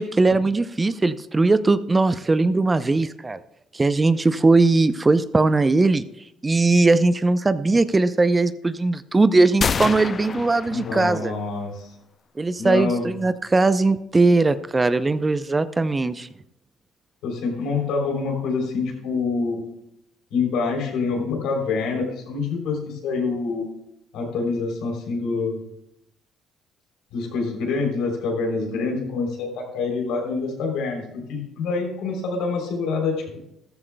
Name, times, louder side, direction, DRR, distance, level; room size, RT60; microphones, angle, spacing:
voice 1, 0.0-3.4 3.7-6.0 6.4-11.3 12.4-16.3, right 3 dB, 25° right, 13 dB, 0.6 m, -19 dB
sound 1, 9.6-11.5, left 5 dB, 45° left, 0.5 m, -28 dB
voice 2, 10.7-11.9 12.6-13.1 17.2-19.7 20.3-23.7 24.1-25.6 27.1-33.4, left 4 dB, 75° left, 1 dB, 3.4 m, -26 dB
14.0 x 13.5 x 2.3 m, 0.82 s
supercardioid pair, 65°, 0 cm